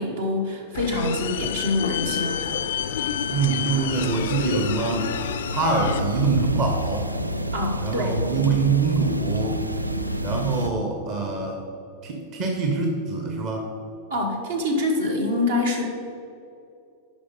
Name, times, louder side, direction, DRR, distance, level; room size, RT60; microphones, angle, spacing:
voice 1, 0.0-2.4 7.5-8.2 14.1-15.9, left 2 dB, 65° right, 1 dB, 1.5 m, -25 dB
sound 1, 0.7-6.0, left 9 dB, 60° left, 0.4 m, -29 dB
voice 2, 3.3-5.1 5.5-7.1 7.8-9.6 10.2-11.6 12.0-13.7, right 4 dB, 35° right, 2 dB, 1.1 m, -25 dB
sound 2, 3.9-10.7, equal, 85° right, 0.4 m, -29 dB
10.0 x 5.4 x 5.4 m, 2.6 s
figure-of-eight pair, 90°, 0 cm